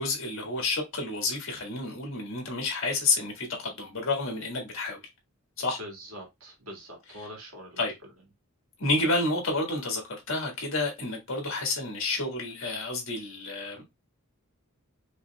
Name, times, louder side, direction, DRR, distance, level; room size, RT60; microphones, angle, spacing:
voice 1, 0.0-5.0 5.6-5.8 7.8-7.9 8.8-13.9, left 2 dB, 65° left, 1.7 m, -30 dB
voice 2, 5.8-7.9, equal, 80° right, 1.9 m, -43 dB
5.4 x 3.0 x 2.3 m
head